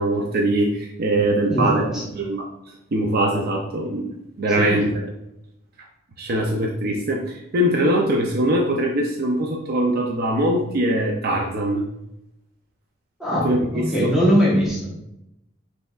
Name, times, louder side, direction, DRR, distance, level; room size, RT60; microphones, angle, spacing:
voice 1, 0.0-1.8 2.1-2.5 2.9-5.0 6.2-11.8 13.4-14.1, right 1 dB, 50° right, 0 dB, 0.5 m, -22 dB
voice 2, 1.5-2.0 4.6-4.8 13.2-15.0, equal, 5° right, -6 dB, 1.1 m, -21 dB
5.3 x 3.4 x 2.4 m, 0.83 s
head